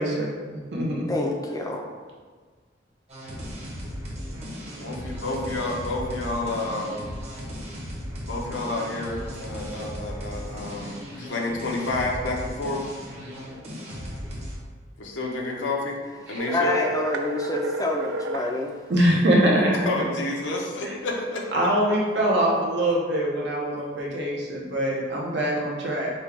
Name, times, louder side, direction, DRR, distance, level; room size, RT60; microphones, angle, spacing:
voice 1, 0.0-1.1 16.3-16.4 18.9-19.9 20.8-20.9 21.5-26.1, right 1 dB, 70° right, -3 dB, 0.9 m, -23 dB
voice 2, 1.1-1.8 16.5-18.8, left 2 dB, 20° left, 1 dB, 0.4 m, -27 dB
sound 1, 3.1-14.6, equal, 35° right, 1.0 m, -36 dB
voice 3, 4.7-7.1 8.2-12.8 15.0-16.0 16.3-16.7 19.8-21.7, left 2 dB, 80° left, -1 dB, 0.7 m, -30 dB
sound 2, 16.4-18.5, right 3 dB, 90° right, 0.3 m, -30 dB
5.3 x 2.2 x 3.4 m, 1.5 s
head